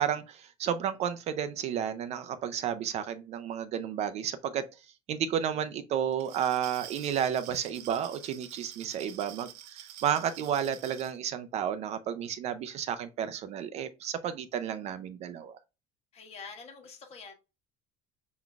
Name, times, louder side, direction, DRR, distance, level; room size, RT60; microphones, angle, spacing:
voice 1, 0.0-4.6 5.1-15.5, right 9 dB, 35° right, 0.4 m, -32 dB
Glass, 6.1-11.2, right 12 dB, 70° right, 0.8 m, -47 dB
voice 2, 16.1-17.3, left 5 dB, 35° left, 1.3 m, -46 dB
6.0 x 3.8 x 2.3 m
cardioid pair, 160°, 18 cm